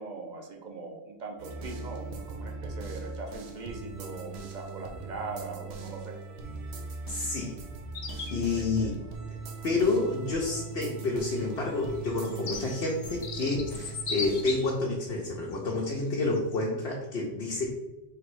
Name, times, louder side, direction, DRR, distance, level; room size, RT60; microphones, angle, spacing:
voice 1, 0.0-6.2 8.5-9.0, right 3 dB, 50° right, 2 dB, 0.7 m, -41 dB
sound 1, 1.4-14.6, right 3 dB, 80° right, 0.9 m, -40 dB
voice 2, 7.1-7.5 8.3-9.0 9.6-17.7, left 3 dB, 75° left, -2 dB, 0.9 m, -29 dB
sound 2, 7.9-8.4 9.9-10.0 11.1-14.9 15.5-15.7 16.3-16.6, left 4 dB, 50° left, 0.6 m, -37 dB
3.4 x 3.0 x 4.6 m, 1.0 s
omnidirectional pair, 1.1 m